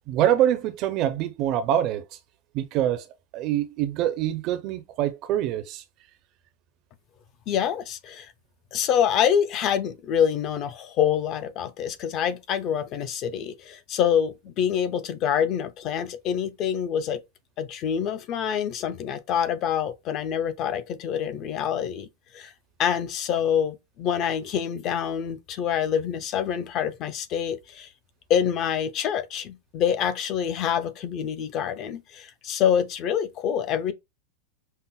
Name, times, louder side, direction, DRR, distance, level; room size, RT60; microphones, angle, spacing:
voice 1, 0.1-2.0 2.5-3.1 3.3-5.8, right 11 dB, 35° right, 0.4 m, -25 dB
voice 2, 7.5-8.3 8.7-17.2 17.6-22.1 22.3-22.5 22.8-27.9 28.3-33.9, left 8 dB, 30° left, 0.4 m, -26 dB
5.4 x 2.0 x 2.2 m
supercardioid pair, 165°, 0 cm